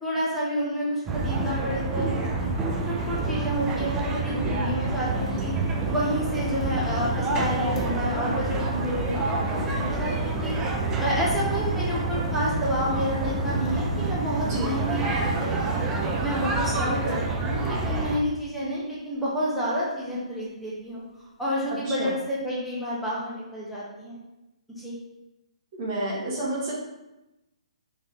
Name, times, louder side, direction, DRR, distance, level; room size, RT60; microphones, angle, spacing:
voice 1, 0.0-2.1 2.4-2.5 2.9-5.5 5.8-10.5 11.0-15.9 16.2-21.0 21.4-24.2 24.8-25.0, equal, ahead, -8 dB, 1.1 m, -30 dB
sound 1, 1.1-18.2, right 2 dB, 15° right, 0.4 m, -27 dB
sound 2, 3.8-3.9 4.8-17.9 18.2-18.7 18.9-19.0 20.9-21.0, left 3 dB, 65° left, 1.1 m, -43 dB
voice 2, 25.8-26.7, right 1 dB, 40° right, -5 dB, 1.1 m, -30 dB
4.4 x 3.3 x 3.2 m, 0.96 s
figure-of-eight pair, 130°, 4 cm